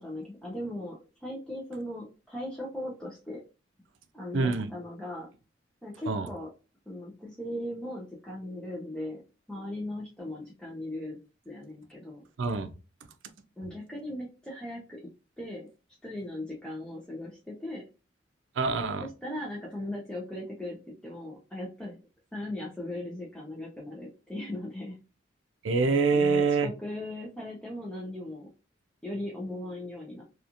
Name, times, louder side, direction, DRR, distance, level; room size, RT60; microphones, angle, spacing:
voice 1, 0.0-3.4 4.1-5.3 5.8-6.5 6.9-9.2 9.5-11.2 11.5-12.2 13.6-15.0 15.4-15.7 16.0-17.8 19.0-20.8 21.0-22.0 22.3-25.0 26.1-28.5 29.0-30.2, left 1 dB, 5° left, 0.5 m, -38 dB
voice 2, 4.3-4.7 6.1-6.3 12.4-12.7 18.6-19.1 25.6-26.7, right 4 dB, 85° right, 0.4 m, -25 dB
2.8 x 2.3 x 2.4 m
head